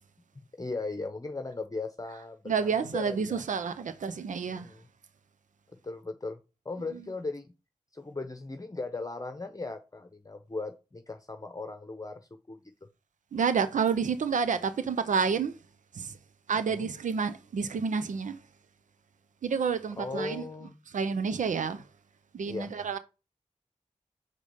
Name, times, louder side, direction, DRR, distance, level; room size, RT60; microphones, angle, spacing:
voice 1, 0.6-3.4 4.5-4.8 5.8-6.4 6.6-7.5 7.9-12.2 12.5-12.6 16.5-16.9 20.0-20.8 22.5-22.7, left 3 dB, 30° left, 0.9 m, -37 dB
voice 2, 2.5-4.7 13.3-15.5 15.9-16.2 16.5-18.4 19.4-20.5 20.9-21.8 22.3-23.0, right 6 dB, 85° right, 0.6 m, -29 dB
6.7 x 5.0 x 5.4 m
cardioid pair, 40°, 13 cm